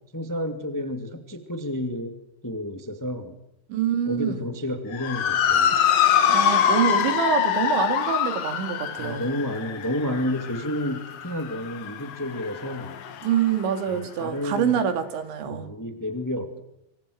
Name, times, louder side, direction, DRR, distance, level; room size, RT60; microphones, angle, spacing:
voice 1, 0.1-2.1 2.4-3.4 4.0-5.7 9.0-13.0 13.9-14.8 15.5-16.6, left 1 dB, 10° left, 7 dB, 0.8 m, -30 dB
voice 2, 3.7-4.4 6.3-9.3 13.2-15.7, right 8 dB, 90° right, 8 dB, 4.7 m, -25 dB
Motor vehicle (road) / Siren, 4.9-13.5, left 9 dB, 70° left, 1.5 m, -24 dB
26.0 x 26.0 x 6.5 m, 0.80 s
omnidirectional pair, 5.1 m